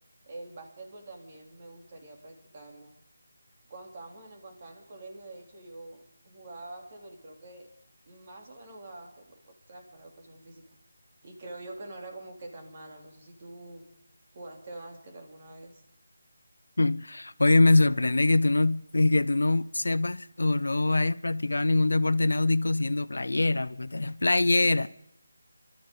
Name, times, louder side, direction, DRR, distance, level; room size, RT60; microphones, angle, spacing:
voice 1, 0.2-2.9 3.7-7.7 8.1-9.4 9.7-10.6 11.2-13.9 14.3-15.8 24.6-24.9, right 2 dB, 35° right, 3.2 m, -46 dB
voice 2, 16.8-24.9, left 2 dB, 70° left, 0.5 m, -24 dB
27.0 x 13.0 x 3.9 m
figure-of-eight pair, 160°, 0 cm